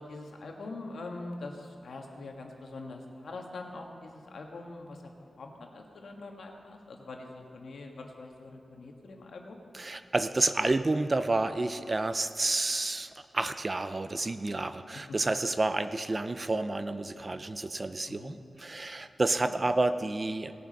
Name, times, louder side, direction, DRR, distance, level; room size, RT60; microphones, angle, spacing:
voice 1, 0.0-5.0 5.4-9.6 18.1-18.3 19.4-19.6, left 2 dB, 75° left, 2 dB, 1.4 m, -43 dB
voice 2, 9.7-20.5, right 2 dB, 25° right, 11 dB, 0.4 m, -30 dB
18.5 x 7.1 x 5.3 m, 2.6 s
wide cardioid pair, 170°, 0 cm